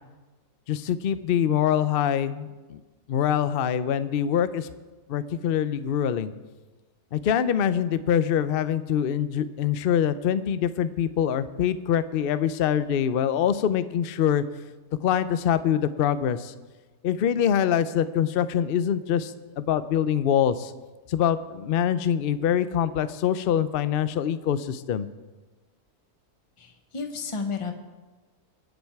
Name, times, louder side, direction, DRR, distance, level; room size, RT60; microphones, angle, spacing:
voice 1, 0.7-2.8 3.1-4.7 5.1-6.3 7.1-14.4 15.0-16.5 17.0-20.7 21.1-25.1, left 9 dB, 60° left, 13 dB, 0.6 m, -24 dB
voice 2, 26.6-27.7, left 5 dB, 20° left, 5 dB, 1.0 m, -32 dB
23.5 x 7.9 x 4.7 m, 1.2 s
omnidirectional pair, 1.7 m